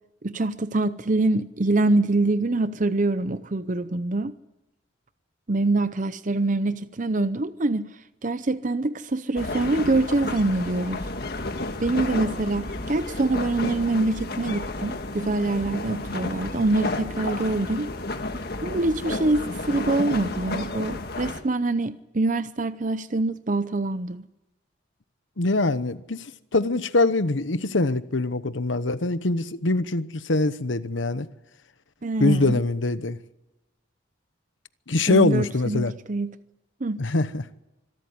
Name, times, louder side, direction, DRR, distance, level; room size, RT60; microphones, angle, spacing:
voice 1, 0.2-4.3 5.5-7.9 8.2-11.0 11.8-17.9 18.6-24.2 32.0-32.6 35.1-36.3 36.8-37.0, right 2 dB, 40° right, 0.7 m, -25 dB
sound 1, 9.4-21.4, left 2 dB, 55° left, 1.7 m, -31 dB
voice 2, 25.4-31.3 32.2-33.2 34.9-35.9 37.0-37.5, left 2 dB, 75° left, 1.0 m, -23 dB
25.5 x 13.0 x 9.6 m
head